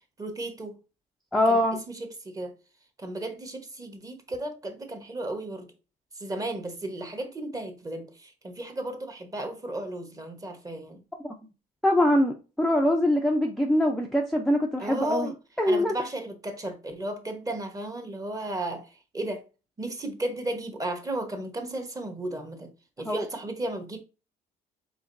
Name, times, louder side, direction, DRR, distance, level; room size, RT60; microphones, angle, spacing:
voice 1, 0.2-0.8 1.5-1.6 1.9-2.5 3.0-5.7 6.1-11.0 14.8-15.3 15.7-19.4 19.8-22.7 23.0-24.0, right 1 dB, 20° right, 1.1 m, -34 dB
voice 2, 1.3-1.8 11.2-11.4 11.8-15.3 15.6-15.9 23.0-23.3, left 1 dB, ahead, 0.6 m, -23 dB
4.9 x 3.8 x 2.6 m
cardioid pair, 110°, 17 cm